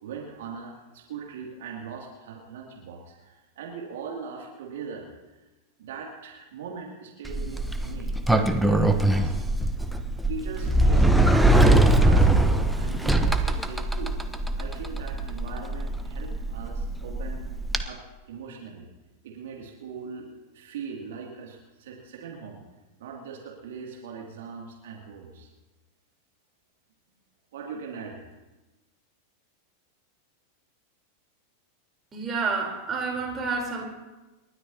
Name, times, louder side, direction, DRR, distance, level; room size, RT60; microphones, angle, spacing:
voice 1, 0.0-5.4 5.8-9.3 10.3-11.4 12.0-14.2 14.6-17.4 17.8-18.0 18.3-18.9 19.2-22.6 23.0-25.5 27.5-28.2, right 5 dB, 55° right, -1 dB, 2.6 m, -40 dB
Sliding door, 7.3-17.8, right 1 dB, ahead, 1.0 m, -22 dB
voice 2, 32.1-33.9, right 4 dB, 20° right, 0 dB, 3.9 m, -29 dB
29.5 x 13.0 x 2.9 m, 1.1 s
figure-of-eight pair, 90°, 0 cm